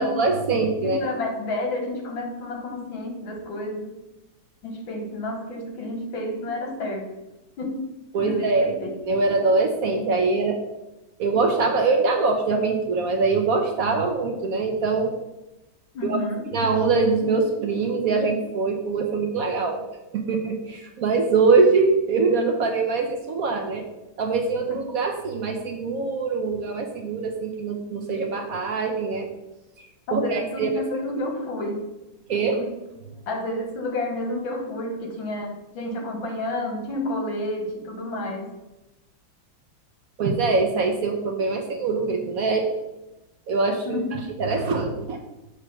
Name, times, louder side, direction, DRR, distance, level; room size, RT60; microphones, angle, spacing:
voice 1, 0.0-1.0 8.1-10.6 11.2-15.1 16.0-16.2 16.5-19.8 20.1-23.8 24.2-29.3 30.1-30.7 32.3-32.6 40.2-42.7 43.5-44.0 44.4-45.2, right 4 dB, 65° right, 3 dB, 0.9 m, -23 dB
voice 2, 0.5-4.0 4.6-7.1 7.6-7.9 8.2-8.9 15.9-16.4 24.7-24.8 30.1-31.8 32.5-32.7 33.3-38.5 43.9-44.1, left 1 dB, 80° left, 3 dB, 2.0 m, -30 dB
7.0 x 3.4 x 6.0 m, 0.98 s
omnidirectional pair, 2.1 m